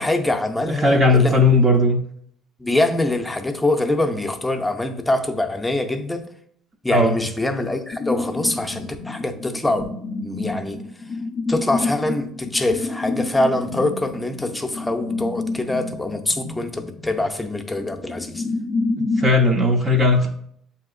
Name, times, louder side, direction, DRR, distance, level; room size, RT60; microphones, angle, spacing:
voice 1, 0.0-1.4 2.6-6.3 6.8-9.9 10.2-10.8 11.5-18.4, left 2 dB, 10° left, 5 dB, 0.6 m, -24 dB
voice 2, 0.7-2.0 6.9-7.1 19.0-20.3, left 2 dB, 35° right, 1 dB, 0.6 m, -17 dB
sound 1, 7.9-19.4, left 3 dB, 50° left, 0.5 m, -29 dB
7.0 x 2.8 x 2.4 m, 0.67 s
supercardioid pair, 80°, 0 cm